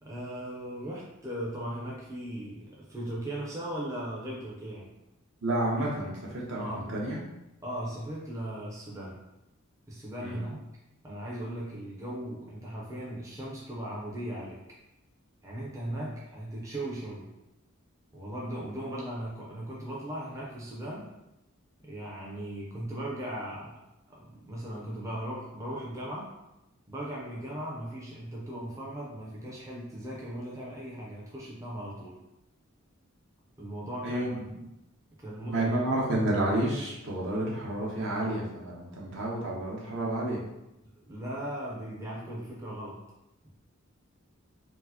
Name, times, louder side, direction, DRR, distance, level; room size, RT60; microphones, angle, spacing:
voice 1, 0.0-4.9 6.6-6.8 7.6-9.2 9.9-10.6 11.0-14.6 15.4-17.3 18.1-21.1 21.8-23.8 24.1-26.3 26.9-32.1 33.6-34.5 35.2-35.8 41.1-43.0, right 1 dB, 15° right, -5 dB, 0.5 m, -38 dB
voice 2, 5.4-7.2 10.2-10.4 16.0-16.1 34.0-34.4 35.5-40.4, right 1 dB, 60° right, -3 dB, 0.9 m, -30 dB
4.4 x 2.0 x 2.8 m, 0.92 s
head